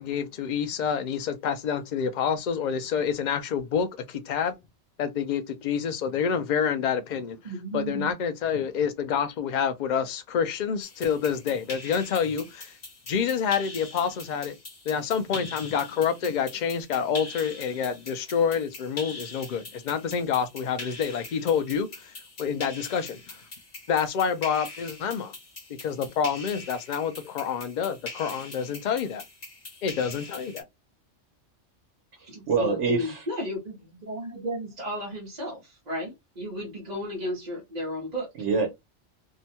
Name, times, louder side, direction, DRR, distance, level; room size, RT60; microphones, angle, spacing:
voice 1, 0.0-4.5 5.0-7.4 7.7-12.8 13.1-14.6 14.9-23.4 23.9-25.3 25.7-29.2 29.8-30.6, left 7 dB, 60° left, 0.5 m, -28 dB
voice 2, 7.4-8.1 32.3-38.3, equal, 40° right, 1.0 m, -34 dB
sound 1, 10.8-30.6, left 3 dB, 40° left, 1.0 m, -43 dB
voice 3, 32.2-33.3 38.3-38.7, right 5 dB, 70° right, 1.1 m, -26 dB
2.8 x 2.2 x 2.8 m
omnidirectional pair, 1.2 m